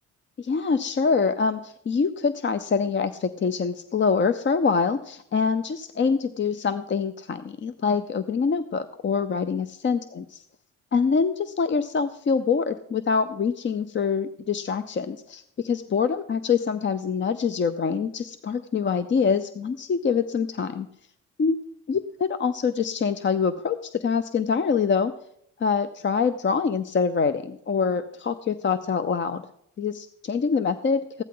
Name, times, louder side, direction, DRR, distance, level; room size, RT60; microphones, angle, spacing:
voice 1, 0.4-10.4 10.9-20.9 21.4-21.6 21.9-22.0 22.4-25.1 25.6-29.4 29.8-31.2, left 5 dB, 40° left, 11 dB, 0.7 m, -25 dB
15.5 x 12.0 x 3.9 m, 0.72 s
cardioid pair, 90°, 30 cm